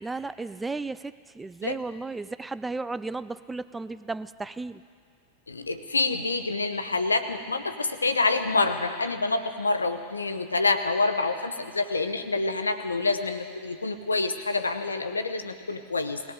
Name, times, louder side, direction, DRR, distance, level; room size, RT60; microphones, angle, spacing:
voice 1, 0.0-4.8, right 3 dB, 10° right, 16 dB, 0.3 m, -34 dB
voice 2, 5.5-16.2, left 3 dB, 75° left, 9 dB, 0.8 m, -27 dB
20.0 x 18.0 x 3.8 m, 2.1 s
figure-of-eight pair, 90°, 0 cm